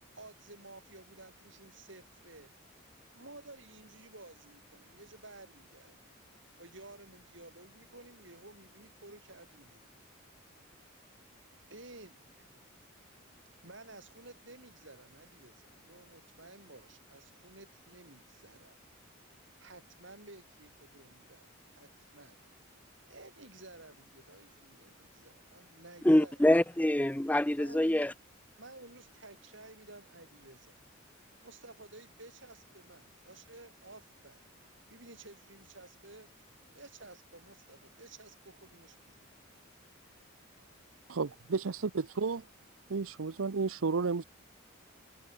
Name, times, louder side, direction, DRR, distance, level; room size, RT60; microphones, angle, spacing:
voice 1, 0.2-2.5 3.1-6.0 6.6-9.9 11.7-12.6 13.6-18.8 19.6-22.4 23.0-26.4 27.6-28.1 28.6-30.7 31.4-34.4 34.9-36.3 36.7-39.3, right 2 dB, 60° right, 6.9 m, -53 dB
voice 2, 26.0-28.1, left 1 dB, 5° left, 0.5 m, -25 dB
voice 3, 41.1-42.4 42.9-44.2, right 4 dB, 85° right, 0.7 m, -32 dB
head